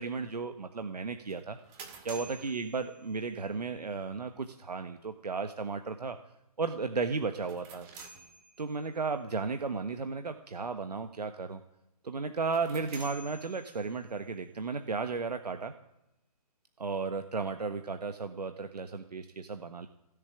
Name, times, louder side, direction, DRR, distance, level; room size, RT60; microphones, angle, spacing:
voice 1, 0.0-1.6 2.0-6.2 6.6-7.9 8.6-11.6 12.0-15.7 16.8-19.9, right 4 dB, 85° right, 8 dB, 1.4 m, -34 dB
sound 1, 1.3-3.5 7.3-9.0 12.3-14.1, right 3 dB, 20° right, 2.1 m, -50 dB
17.0 x 7.5 x 9.7 m, 0.89 s
hypercardioid pair, 160°, 20 cm